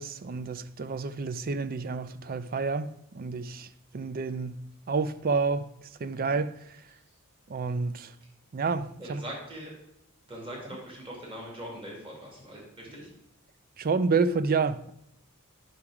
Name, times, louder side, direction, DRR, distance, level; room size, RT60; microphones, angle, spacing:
voice 1, 0.0-3.7 3.9-6.8 7.5-8.1 8.5-9.2 13.8-14.9, right 4 dB, 40° right, 0.4 m, -29 dB
voice 2, 9.0-9.7 10.3-13.1, equal, 25° right, 2.4 m, -41 dB
10.0 x 5.9 x 4.8 m
head